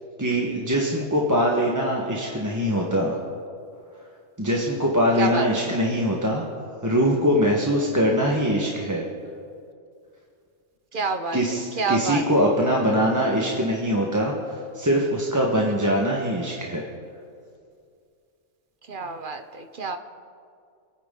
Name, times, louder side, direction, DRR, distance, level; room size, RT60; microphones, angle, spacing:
voice 1, 0.2-3.2 4.4-6.4 6.8-9.0 11.3-16.8, equal, 15° right, -2 dB, 1.2 m, -22 dB
voice 2, 10.9-11.4 11.8-12.2 18.9-20.0, right 4 dB, 45° right, 7 dB, 0.9 m, -27 dB
26.0 x 9.5 x 3.8 m, 2.3 s
omnidirectional pair, 1.4 m